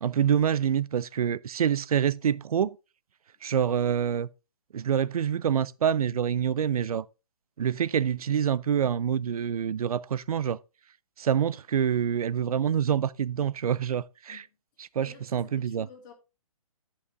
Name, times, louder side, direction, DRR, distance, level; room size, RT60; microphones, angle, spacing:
voice 1, 0.0-2.8 3.4-4.3 4.7-7.0 7.6-10.6 11.2-14.4 14.9-15.9, right 8 dB, 75° right, 0.6 m, -26 dB
voice 2, 15.0-16.1, left 7 dB, 35° left, 2.5 m, -51 dB
11.0 x 5.6 x 3.5 m
hypercardioid pair, 160°, 19 cm